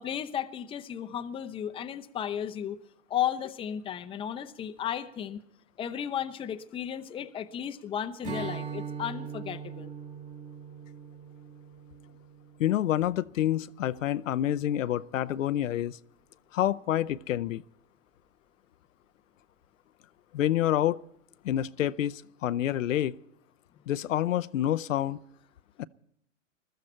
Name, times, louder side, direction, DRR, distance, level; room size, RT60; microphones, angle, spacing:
voice 1, 0.0-2.8 3.1-5.4 5.8-9.9, left 9 dB, 15° left, 8 dB, 0.7 m, -34 dB
Strum, 8.2-13.7, right 7 dB, 20° right, 1.7 m, -41 dB
voice 2, 12.6-16.0 16.5-17.6 20.3-21.0 21.4-23.1 23.9-25.2 25.8-25.9, left 12 dB, 80° left, 13 dB, 0.7 m, -28 dB
21.0 x 14.0 x 4.4 m, 0.71 s
hypercardioid pair, 125°, 38 cm